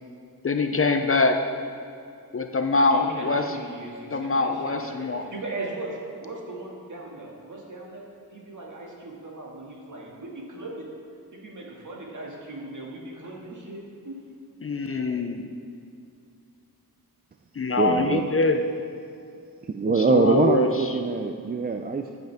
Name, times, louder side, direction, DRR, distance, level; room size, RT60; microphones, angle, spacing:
voice 1, 0.4-1.4 2.3-3.6 4.1-5.2 14.6-15.5 17.6-18.6 19.9-20.9, left 3 dB, 35° left, 6 dB, 0.5 m, -24 dB
voice 2, 2.9-8.0 8.3-10.8 11.3-14.2, right 2 dB, 50° right, -3 dB, 2.2 m, -38 dB
voice 3, 17.8-18.2 19.6-22.2, right 4 dB, 25° right, 5 dB, 0.4 m, -23 dB
14.5 x 8.0 x 3.5 m, 2.5 s
wide cardioid pair, 105°, 38 cm